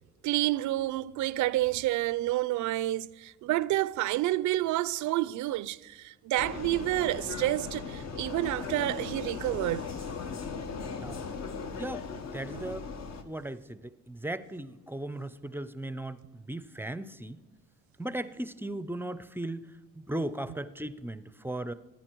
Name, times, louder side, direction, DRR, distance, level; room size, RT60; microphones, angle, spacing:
voice 1, 0.2-9.9 12.5-12.6, right 16 dB, 75° right, 0.5 m, -29 dB
Vehicle, 6.4-13.2, left 5 dB, 60° left, 1.1 m, -38 dB
voice 2, 11.7-12.1 12.3-12.9 13.2-17.4 18.0-21.7, right 1 dB, 5° right, 0.5 m, -37 dB
14.5 x 9.5 x 4.5 m
cardioid pair, 90°, 30 cm